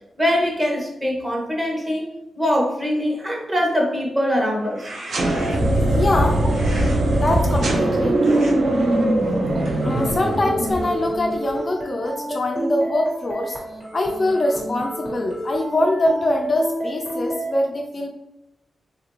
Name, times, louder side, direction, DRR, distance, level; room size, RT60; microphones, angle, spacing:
voice 1, 0.2-2.1 2.3-4.9, equal, 15° right, -1 dB, 0.8 m, -22 dB
sound 1, 4.6-5.8 6.5-7.0 7.5-7.8 8.2-8.5 9.1-11.7, right 1 dB, 90° right, 0.9 m, -38 dB
sound 2, 5.1-11.1, right 1 dB, 60° right, 0.5 m, -20 dB
voice 2, 5.7-6.4 7.1-8.5 9.8-13.6 13.9-18.1, left 1 dB, 30° left, 1 dB, 0.3 m, -23 dB
sound 3, 9.5-17.5, right 1 dB, 35° right, 1.2 m, -30 dB
3.6 x 2.4 x 2.9 m, 0.91 s
wide cardioid pair, 165°, 0 cm